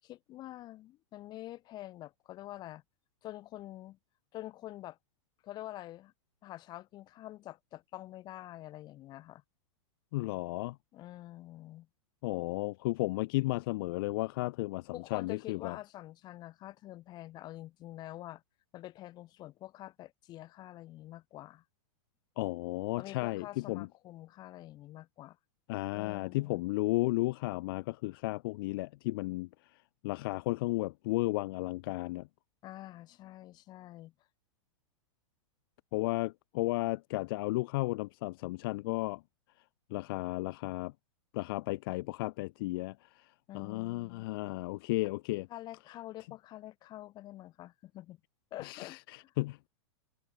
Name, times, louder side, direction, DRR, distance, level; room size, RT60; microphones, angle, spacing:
voice 1, 0.0-2.8 3.2-4.0 4.3-5.0 5.4-6.1 6.4-9.4 10.9-11.9 14.9-18.4 18.7-21.6 23.0-25.4 25.9-26.6 32.6-34.1 43.5-44.2 45.5-48.2 48.5-49.3, left 15 dB, 25° left, 7.9 m, -46 dB
voice 2, 10.1-10.8 12.2-15.8 22.4-23.9 25.7-29.5 30.0-32.3 35.9-39.2 39.9-40.9 41.3-45.5 48.6-49.7, left 20 dB, 45° left, 3.4 m, -34 dB
supercardioid pair, 165°, 16 cm